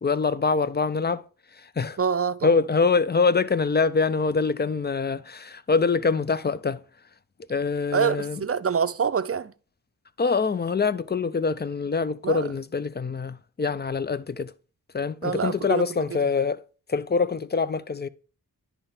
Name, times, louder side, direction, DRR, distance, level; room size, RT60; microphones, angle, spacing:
voice 1, 0.0-1.2 1.8-2.0 2.4-6.8 7.5-8.4 10.2-14.5 14.9-16.6 16.9-18.1, left 4 dB, 30° left, 0.5 m, -24 dB
voice 2, 2.0-2.6 7.9-9.5 12.2-12.5 15.2-16.2, right 6 dB, 40° right, 0.5 m, -26 dB
10.5 x 3.5 x 5.8 m
wide cardioid pair, 65°, 36 cm